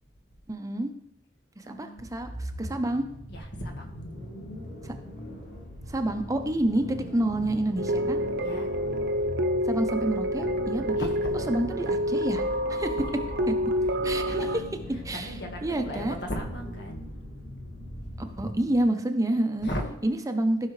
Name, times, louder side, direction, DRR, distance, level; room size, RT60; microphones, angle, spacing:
voice 1, 0.5-0.9 1.6-3.0 4.8-4.9 5.9-8.2 9.7-11.1 11.5-12.4 12.7-12.9 13.5-13.6 14.0-14.5 15.0-15.3 15.6-16.2 18.4-19.7 20.0-20.6, right 1 dB, 20° right, 6 dB, 0.7 m, -28 dB
voice 2, 1.6-2.1 3.3-4.1 8.4-8.7 10.9-11.5 14.0-14.6 15.1-17.1 19.6-19.9, equal, 65° left, 3 dB, 1.6 m, -37 dB
sound 1, 2.0-18.8, equal, 50° left, 3.0 m, -40 dB
sound 2, 7.8-14.6, equal, 60° right, 0.8 m, -28 dB
15.0 x 5.6 x 3.2 m, 0.74 s
head